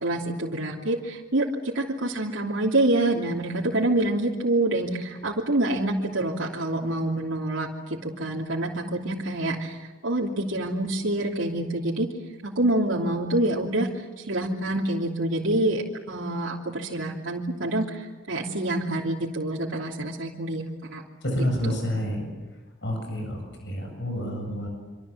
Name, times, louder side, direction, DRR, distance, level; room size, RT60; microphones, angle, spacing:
voice 1, 0.0-12.1 12.4-21.0 21.6-21.8, right 1 dB, 80° right, -3 dB, 3.0 m, -27 dB
voice 2, 21.2-22.3 22.8-24.7, equal, 60° left, 3 dB, 7.9 m, -29 dB
26.5 x 26.5 x 7.4 m, 1.2 s
head